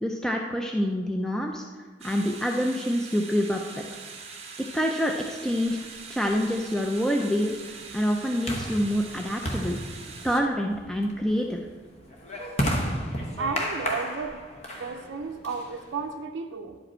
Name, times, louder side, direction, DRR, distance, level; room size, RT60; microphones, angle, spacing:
voice 1, 0.0-3.8 4.7-9.8 10.2-11.6, equal, 5° left, 1 dB, 0.3 m, -27 dB
sound 1, 2.0-10.4, right 5 dB, 35° right, 0.9 m, -43 dB
sound 2, 5.8-16.1, equal, 35° left, 1.0 m, -34 dB
voice 2, 13.4-14.4 14.8-16.8, right 4 dB, 75° right, 3 dB, 0.4 m, -33 dB
10.5 x 5.1 x 4.3 m, 1.4 s
head